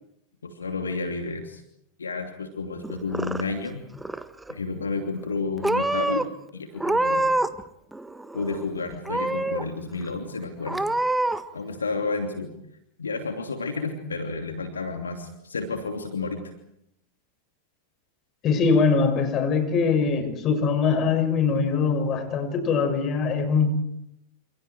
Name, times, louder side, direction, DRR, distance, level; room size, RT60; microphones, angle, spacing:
voice 1, 0.4-1.6 2.0-3.8 4.5-6.3 6.5-7.3 8.3-10.8 11.5-12.5 13.0-16.5, left 4 dB, 75° left, 4 dB, 2.9 m, -31 dB
Purr / Meow, 2.8-3.7 4.0-4.6 5.2-5.4 5.6-6.2 6.8-7.6 7.9-8.6 9.0-9.6 10.1-10.2 10.7-11.4, right 2 dB, 5° right, 1.5 m, -26 dB
voice 2, 18.4-23.7, left 5 dB, 30° left, 7 dB, 6.9 m, -22 dB
29.5 x 29.0 x 4.8 m, 0.77 s
figure-of-eight pair, 90°, 0 cm